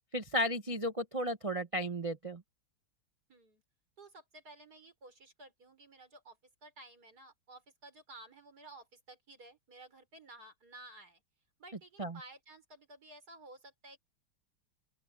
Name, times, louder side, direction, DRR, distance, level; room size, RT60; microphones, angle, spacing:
voice 1, 0.1-2.4 12.0-12.2, equal, 60° right, 0.3 m, -34 dB
voice 2, 3.3-3.6 4.0-11.2 11.6-14.0, right 2 dB, 45° right, 6.0 m, -54 dB
open air
omnidirectional pair, 2.3 m